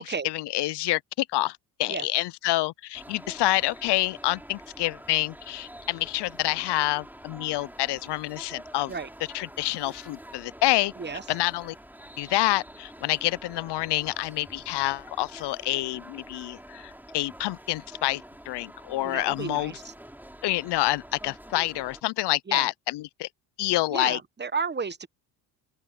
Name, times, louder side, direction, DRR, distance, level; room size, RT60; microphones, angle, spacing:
voice 1, 0.1-8.9 9.3-10.9 11.3-11.7 12.2-19.7 20.4-23.3 23.6-24.2, left 17 dB, 65° left, 0.7 m, -27 dB
sound 1, 2.9-22.0, right 1 dB, 5° right, 4.5 m, -47 dB
voice 2, 19.0-19.9 22.5-22.7 23.9-25.1, right 5 dB, 25° right, 1.0 m, -32 dB
open air
supercardioid pair, 70°, 45 cm